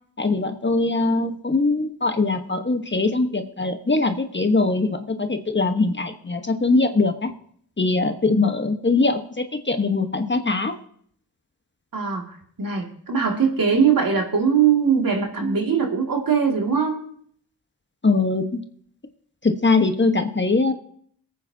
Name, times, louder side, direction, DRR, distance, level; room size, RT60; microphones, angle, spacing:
voice 1, 0.2-7.3 7.8-10.7 18.0-18.6 19.4-20.7, left 3 dB, 25° left, 7 dB, 1.2 m, -22 dB
voice 2, 11.9-17.0, right 6 dB, 55° right, 2 dB, 2.3 m, -21 dB
22.0 x 8.7 x 2.8 m, 0.62 s
supercardioid pair, 40°, 40 cm